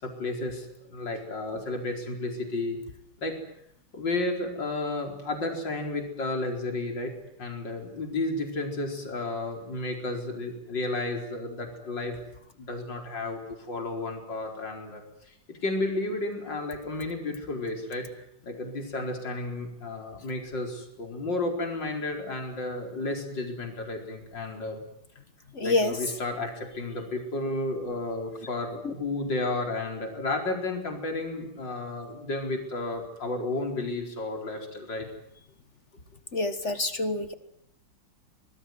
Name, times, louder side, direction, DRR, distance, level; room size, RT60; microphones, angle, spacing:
voice 1, 0.0-2.8 3.2-3.4 3.9-7.1 7.4-12.1 12.6-13.4 13.7-18.1 18.4-24.8 25.6-35.1, left 2 dB, 55° left, 3 dB, 5.2 m, -32 dB
voice 2, 25.6-25.9 36.3-37.3, left 2 dB, 35° left, 11 dB, 1.6 m, -26 dB
25.5 x 20.0 x 9.4 m, 0.76 s
omnidirectional pair, 2.3 m